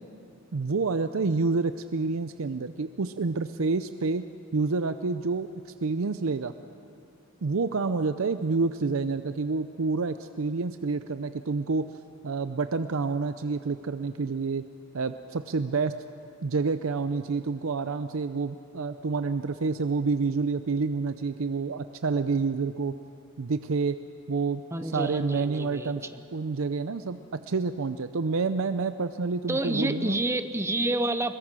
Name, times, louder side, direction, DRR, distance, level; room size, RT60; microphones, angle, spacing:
voice 1, 0.5-4.2 4.5-5.5 5.8-6.5 7.4-11.9 12.2-14.6 14.9-16.0 16.4-22.9 23.4-24.0 24.3-26.1 26.3-30.2, right 4 dB, 90° right, 10 dB, 0.6 m, -28 dB
voice 2, 24.7-26.2 29.5-31.4, right 1 dB, 15° right, 10 dB, 0.7 m, -29 dB
22.5 x 21.5 x 6.2 m, 2.7 s
head